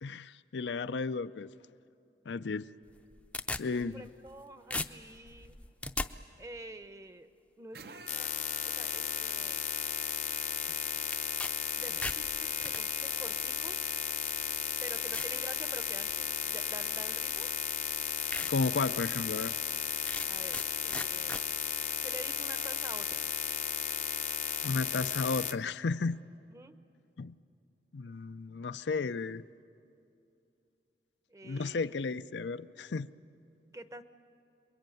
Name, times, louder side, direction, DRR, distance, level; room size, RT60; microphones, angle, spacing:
voice 1, 0.0-1.5 2.3-2.7 3.6-4.0 18.4-19.5 24.6-26.2 27.2-27.3 27.9-29.4 31.4-33.1, left 4 dB, 80° left, 12 dB, 0.5 m, -33 dB
sound 1, 2.9-4.4 4.7-6.1 11.1-11.5 11.8-12.8 13.7-13.8 14.4-14.5 15.1-15.4 15.9-16.2 17.4-17.5 17.9-18.0 18.3-18.5 19.0-19.1 20.1-20.7 20.9-21.4, left 2 dB, 5° left, 0.6 m, -37 dB
voice 2, 3.6-5.6 6.4-7.3 7.6-9.6 11.7-13.9 14.8-17.5 20.3-21.4 22.0-23.3 26.5-26.8 31.3-31.8 33.7-34.0, right 1 dB, 15° right, 10 dB, 0.8 m, -48 dB
sound 2, 7.7-25.6, right 3 dB, 60° right, 0.8 m, -46 dB
sound 3, 8.1-25.5, left 11 dB, 40° left, 0.7 m, -35 dB
27.0 x 22.5 x 9.2 m, 2.6 s
head